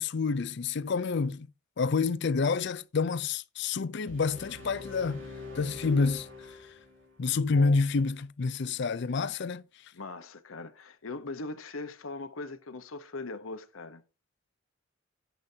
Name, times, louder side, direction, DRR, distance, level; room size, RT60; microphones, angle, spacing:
voice 1, 0.0-1.5 1.8-5.2 5.5-6.6 7.2-9.6, left 4 dB, 60° left, 0.5 m, -28 dB
sound 1, 4.1-7.1, left 3 dB, 70° right, 3.2 m, -44 dB
voice 2, 9.9-14.0, left 3 dB, 90° left, 1.0 m, -40 dB
10.5 x 10.0 x 2.8 m
head